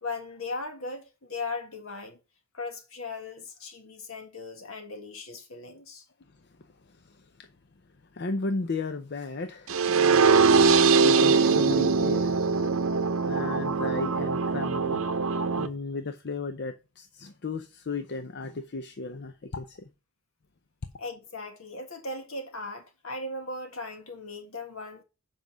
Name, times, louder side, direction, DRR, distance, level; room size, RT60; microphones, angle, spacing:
voice 1, 0.0-2.2 2.5-6.0 21.0-25.0, left 3 dB, 70° left, 1.7 m, -38 dB
voice 2, 7.0-7.5 8.1-12.5 13.3-15.0 15.6-19.9, left 3 dB, 50° left, 0.6 m, -35 dB
sound 1, 9.7-15.7, right 5 dB, 65° right, 0.7 m, -22 dB
7.4 x 5.3 x 6.1 m
head